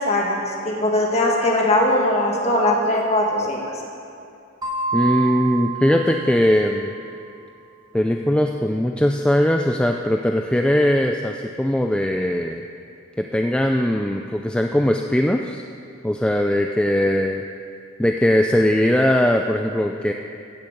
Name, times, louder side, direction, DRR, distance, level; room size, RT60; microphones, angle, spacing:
voice 1, 0.0-3.7, left 1 dB, 30° left, -2 dB, 2.1 m, -20 dB
sound 1, 4.6-7.1, right 5 dB, 20° right, 1.7 m, -28 dB
voice 2, 4.9-6.9 7.9-12.6 13.2-15.6 16.0-17.4 18.0-20.1, left 1 dB, 5° left, 3 dB, 0.4 m, -20 dB
14.5 x 6.7 x 8.5 m, 2.5 s
head